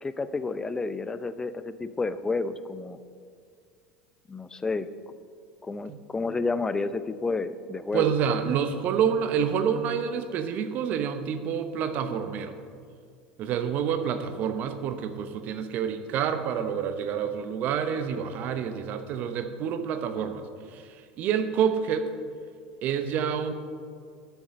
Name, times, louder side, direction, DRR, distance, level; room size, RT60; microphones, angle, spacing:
voice 1, 0.0-3.0 4.3-4.9 5.6-8.1, left 3 dB, 15° left, 13 dB, 0.5 m, -30 dB
voice 2, 7.9-12.5 13.4-20.4 20.7-20.8 21.2-22.1 22.8-23.5, right 7 dB, 50° right, 9 dB, 0.9 m, -28 dB
11.5 x 7.1 x 5.2 m, 2.2 s
hypercardioid pair, 80°, 4 cm